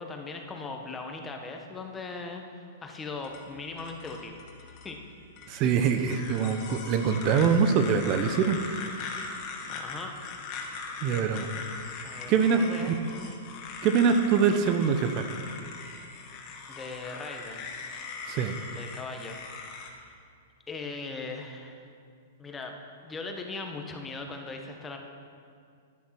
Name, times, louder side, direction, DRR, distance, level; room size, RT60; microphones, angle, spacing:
voice 1, 0.0-4.4 4.6-5.0 5.6-5.8 9.7-10.1 11.4-11.7 12.0-13.3 16.7-17.7 18.4-20.2 20.7-21.9 22.4-22.7 23.0-25.0, left 3 dB, 15° left, 3 dB, 1.6 m, -40 dB
sound 1, 3.2-19.9, left 4 dB, 40° left, 2.0 m, -41 dB
voice 2, 5.5-9.4 11.0-11.5 12.3-12.6 13.8-15.2 18.3-18.6, right 6 dB, 40° right, 7 dB, 0.9 m, -24 dB
11.0 x 11.0 x 6.0 m, 2.2 s
hypercardioid pair, 110°, 0 cm